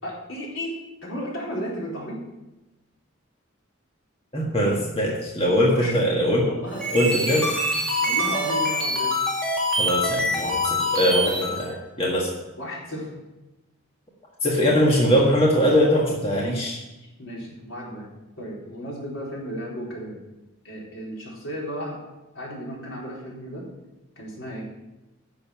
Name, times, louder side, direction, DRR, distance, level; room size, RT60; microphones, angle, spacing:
voice 1, 0.0-2.2 5.7-6.0 6.5-6.9 7.2-7.5 8.0-9.2 12.6-13.1 17.0-18.1 18.4-20.2 20.6-22.0 22.3-23.7 24.2-24.6, equal, 75° left, -4 dB, 4.0 m, -34 dB
voice 2, 4.3-6.5 6.9-7.5 9.8-12.3 14.4-16.8, equal, 30° left, -2 dB, 1.6 m, -21 dB
sound 1, 6.7-11.7, left 1 dB, 5° left, 2.2 m, -25 dB
10.5 x 6.7 x 7.1 m, 1.0 s
head